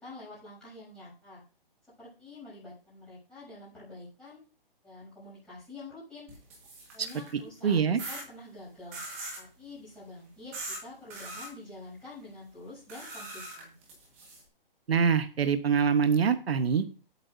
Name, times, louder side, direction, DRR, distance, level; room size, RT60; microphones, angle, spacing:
voice 1, 0.0-1.4 2.0-4.4 4.8-6.3 6.9-9.0 9.3-13.7, left 2 dB, 5° left, -11 dB, 7.6 m, -47 dB
sound 1, 6.3-7.4 8.0-8.2 8.9-9.4 10.5-10.8 11.1-11.5 12.9-14.4, right 2 dB, 15° right, 1.7 m, -41 dB
voice 2, 7.6-8.0 14.9-16.8, right 6 dB, 90° right, 11 dB, 1.2 m, -24 dB
18.5 x 8.7 x 2.7 m, 0.36 s
hypercardioid pair, 180°, 29 cm